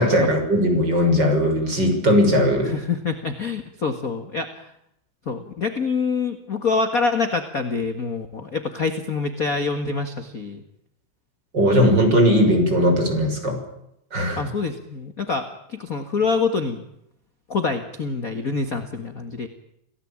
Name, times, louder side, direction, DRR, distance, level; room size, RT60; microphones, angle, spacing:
voice 1, 0.0-2.7 11.5-13.6 14.1-14.4, equal, 30° right, 4 dB, 6.7 m, -18 dB
voice 2, 2.6-4.6 5.3-10.6 14.4-16.8 17.5-19.5, left 4 dB, 35° left, 8 dB, 1.8 m, -26 dB
28.5 x 18.0 x 8.9 m, 0.78 s
omnidirectional pair, 3.6 m